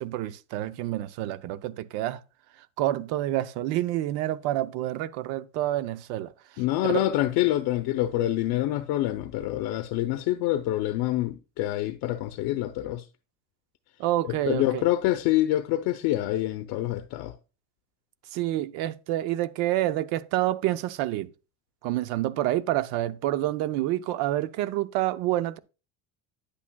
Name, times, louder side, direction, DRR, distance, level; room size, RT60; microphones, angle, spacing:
voice 1, 0.0-2.2 2.8-6.3 6.8-7.1 14.0-14.8 18.3-21.3 21.8-25.6, right 14 dB, 90° right, 0.7 m, -28 dB
voice 2, 6.6-13.1 14.3-17.4, left 14 dB, 70° left, 0.7 m, -26 dB
9.8 x 8.5 x 2.2 m
cardioid pair, 165°, 36 cm